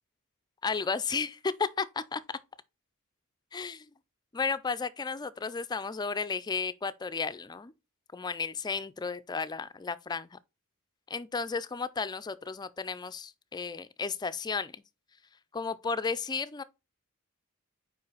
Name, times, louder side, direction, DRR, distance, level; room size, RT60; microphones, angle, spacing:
voice 1, 0.6-2.4 3.5-3.9 4.3-7.7 8.1-10.4 11.1-14.8 15.5-16.6, left 5 dB, 20° left, 0.4 m, -33 dB
5.4 x 4.9 x 3.9 m
head